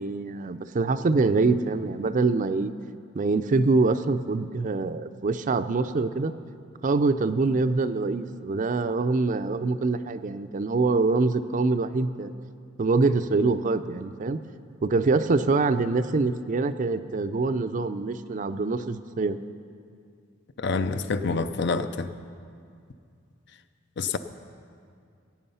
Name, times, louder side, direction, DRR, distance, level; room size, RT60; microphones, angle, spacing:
voice 1, 0.0-2.7 3.1-6.3 6.8-12.3 12.8-14.4 14.8-19.4, right 3 dB, 40° right, 11 dB, 0.4 m, -24 dB
voice 2, 20.6-22.1 24.0-24.2, left 4 dB, 60° left, 11 dB, 0.6 m, -27 dB
17.0 x 8.9 x 5.6 m, 2.3 s
head